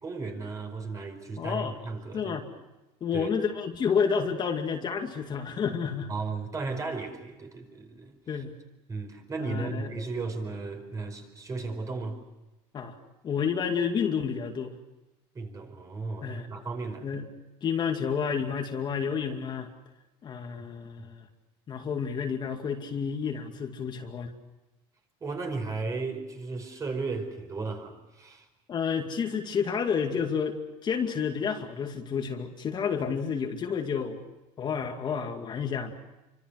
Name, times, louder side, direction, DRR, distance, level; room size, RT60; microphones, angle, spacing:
voice 1, 0.0-2.5 3.1-3.3 6.1-8.1 8.9-12.2 15.3-17.1 21.0-21.1 25.2-28.5, right 3 dB, 25° right, 5 dB, 5.0 m, -35 dB
voice 2, 1.4-1.7 2.1-2.5 3.0-6.1 8.3-8.5 9.4-9.9 12.7-13.0 13.2-14.7 16.2-16.5 17.0-17.3 17.6-19.7 20.2-21.2 21.7-24.3 28.7-30.6 30.8-34.2 34.6-35.9, left 6 dB, 35° left, 3 dB, 2.4 m, -30 dB
28.5 x 25.0 x 6.4 m, 1.0 s
cardioid pair, 120°, 13 cm